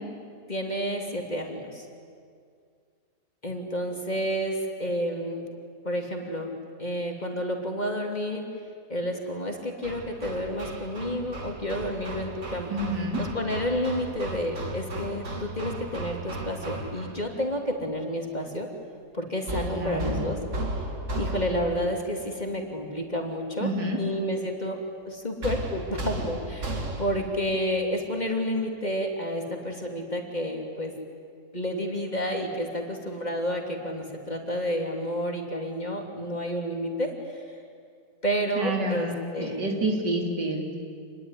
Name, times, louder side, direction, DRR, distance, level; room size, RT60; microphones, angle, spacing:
voice 1, 0.5-1.9 3.4-5.4 5.8-6.5 6.8-8.5 8.9-12.7 13.2-18.7 19.1-20.4 21.1-23.7 24.0-24.8 25.1-30.9 31.5-37.4 38.2-39.7, equal, 25° left, 2 dB, 3.0 m, -30 dB
Hammer, 9.8-17.3 19.5-21.9 25.4-27.3, right 1 dB, 45° right, 2.5 m, -35 dB
voice 2, 12.7-13.2 19.7-20.2 23.6-24.0 38.6-40.8, right 1 dB, 80° right, 1 dB, 4.1 m, -28 dB
28.0 x 21.0 x 10.0 m, 2.2 s
omnidirectional pair, 1.8 m